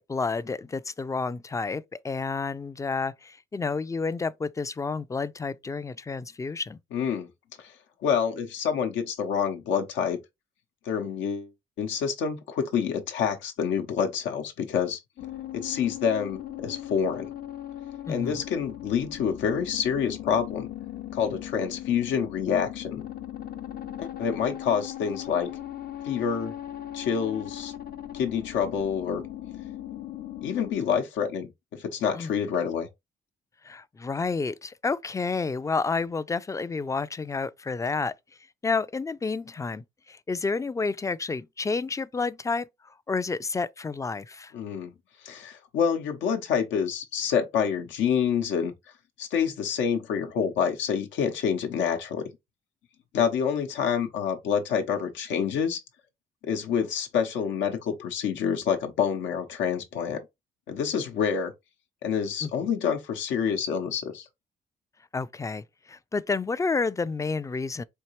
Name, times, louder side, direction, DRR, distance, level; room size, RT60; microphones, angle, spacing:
voice 1, 0.0-6.8 18.1-18.4 32.1-32.3 33.6-38.1 38.6-42.7 43.1-44.5 62.4-62.5 65.1-67.8, left 4 dB, 15° left, 0.3 m, -30 dB
voice 2, 6.9-7.3 7.6-7.7 8.0-10.2 10.8-11.5 11.8-15.0 15.5-17.3 18.1-20.7 21.1-23.0 24.0-25.5 26.0-26.5 26.9-27.7 28.1-29.2 30.4-32.9 44.5-44.9 45.2-48.7 49.2-52.3 53.1-55.8 56.4-60.2 60.7-61.5 62.0-64.3, left 7 dB, 90° left, 0.9 m, -27 dB
sound 1, 15.2-30.7, left 12 dB, 55° left, 0.6 m, -39 dB
4.4 x 2.8 x 3.0 m
cardioid pair, 75°, 19 cm